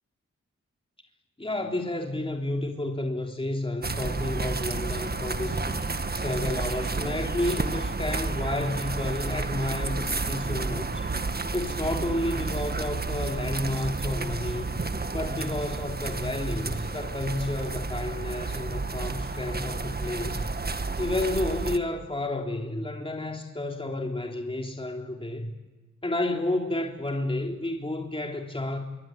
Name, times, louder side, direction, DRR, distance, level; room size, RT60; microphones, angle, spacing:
voice 1, 1.4-5.8 6.2-11.1 11.5-14.8 15.1-20.5 21.0-25.5 26.0-28.8, left 1 dB, 20° left, 3.7 m, -31 dB
sound 1, 3.8-21.8, right 3 dB, 35° right, 1.7 m, -31 dB
26.0 x 23.0 x 9.3 m
supercardioid pair, 45°, 29 cm